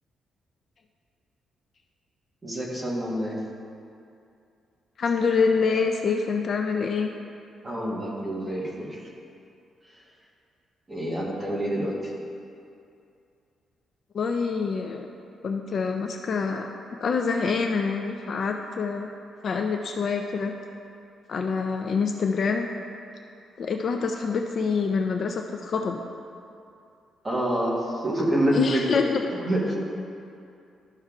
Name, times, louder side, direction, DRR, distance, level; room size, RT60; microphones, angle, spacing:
voice 1, 2.4-3.4 7.6-9.0 10.9-12.1 27.2-28.9 29.4-29.8, right 1 dB, 15° right, -4 dB, 1.1 m, -27 dB
voice 2, 5.0-7.1 14.1-15.1 15.4-16.7 17.0-19.1 19.4-20.6 21.3-22.7 23.6-26.0 28.5-29.3, left 5 dB, 40° left, 3 dB, 0.3 m, -26 dB
12.5 x 5.5 x 2.3 m, 2.5 s
cardioid pair, 180°, 0 cm